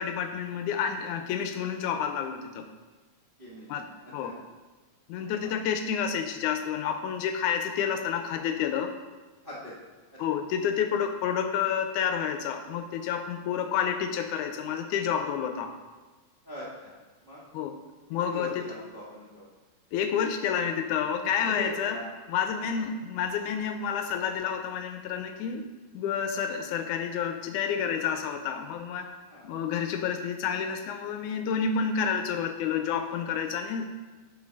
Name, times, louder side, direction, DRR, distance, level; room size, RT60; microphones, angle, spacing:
voice 1, 0.0-2.7 3.7-3.9 4.1-4.3 5.1-8.9 10.2-15.7 17.5-17.8 18.1-18.7 19.9-22.0 22.3-25.6 25.9-29.1 29.4-34.0, left 7 dB, 80° left, 7 dB, 1.9 m, -29 dB
voice 2, 3.4-3.9 4.2-4.3 5.2-5.5 9.4-9.7 16.4-16.9 17.2-17.4 18.3-19.4 21.4-22.1 29.3-29.5, left 1 dB, 35° right, -7 dB, 0.7 m, -41 dB
7.3 x 6.3 x 5.1 m, 1.3 s
omnidirectional pair, 3.7 m